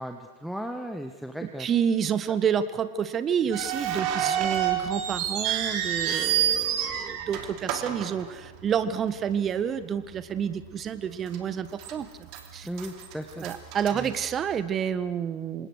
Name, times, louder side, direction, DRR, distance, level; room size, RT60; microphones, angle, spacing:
voice 1, 0.0-1.7 4.2-4.5 12.6-13.5 13.9-14.1, equal, ahead, 5 dB, 1.5 m, -36 dB
voice 2, 1.4-12.7 13.4-15.7, right 8 dB, 25° right, 14 dB, 1.5 m, -29 dB
sound 1, 3.5-8.8 9.1-9.2 10.0-10.2 10.6-10.7 11.3-11.9 12.3-14.7, right 10 dB, 40° right, 3.0 m, -29 dB
28.0 x 26.0 x 6.5 m, 1.2 s
figure-of-eight pair, 90°, 0 cm